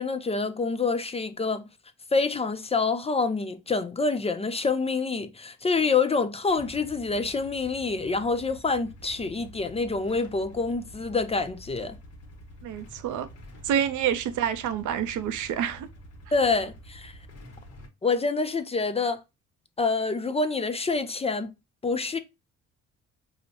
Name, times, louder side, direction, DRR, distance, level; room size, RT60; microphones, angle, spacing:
voice 1, 0.0-1.7 2.1-12.0 16.3-17.2 18.0-19.2 19.8-21.5 21.8-22.2, left 4 dB, 20° left, 0.4 m, -27 dB
Motorcycle / Engine starting / Idling, 6.5-17.9, equal, 55° left, 0.9 m, -48 dB
voice 2, 12.6-13.3 13.6-15.9, right 9 dB, 75° right, 0.5 m, -28 dB
4.7 x 2.0 x 2.6 m
cardioid pair, 90°, 30 cm